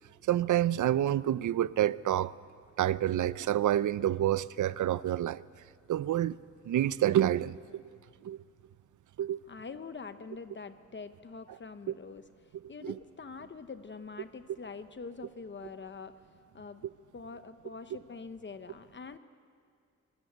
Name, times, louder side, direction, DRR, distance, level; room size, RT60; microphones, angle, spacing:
voice 1, 0.3-2.3 2.8-5.4 5.9-6.4 6.7-7.8 8.2-8.4 9.2-9.4 12.8-12.9, right 12 dB, 75° right, 0.6 m, -28 dB
voice 2, 9.5-16.2 16.5-16.8 17.1-19.2, left 4 dB, 40° left, 0.9 m, -45 dB
24.5 x 20.0 x 8.0 m
wide cardioid pair, 120°, 30 cm